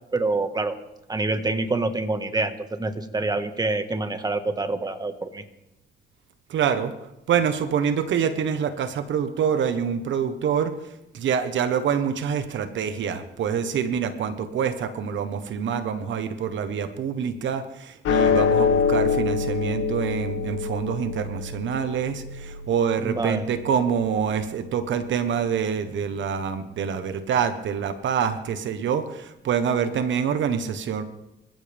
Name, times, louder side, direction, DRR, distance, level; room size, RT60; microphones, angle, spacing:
voice 1, 0.1-0.7 1.1-2.5 2.8-5.4 23.0-23.4, right 3 dB, 20° right, 8 dB, 1.6 m, -26 dB
voice 2, 6.5-6.9 7.3-10.7 11.1-31.0, right 7 dB, 70° right, 10 dB, 1.2 m, -26 dB
sound 1, 18.0-24.6, left 6 dB, 80° left, 1.8 m, -26 dB
25.5 x 15.5 x 3.5 m, 0.92 s
cardioid pair, 90°, 20 cm